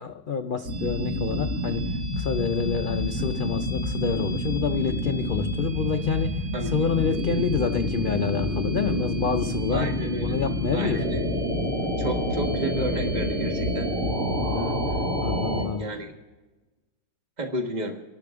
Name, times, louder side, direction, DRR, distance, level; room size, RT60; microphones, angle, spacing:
voice 1, 0.0-6.4 6.7-11.0 14.3-14.8 15.2-15.8, left 6 dB, 80° left, 6 dB, 0.4 m, -28 dB
sound 1, 0.6-15.6, equal, 50° right, 2.4 m, -28 dB
voice 2, 9.7-10.4 10.7-11.3 12.0-13.9 15.6-16.1 17.4-18.0, right 1 dB, 30° right, 3 dB, 1.5 m, -32 dB
30.0 x 11.5 x 3.6 m, 1.2 s
omnidirectional pair, 1.7 m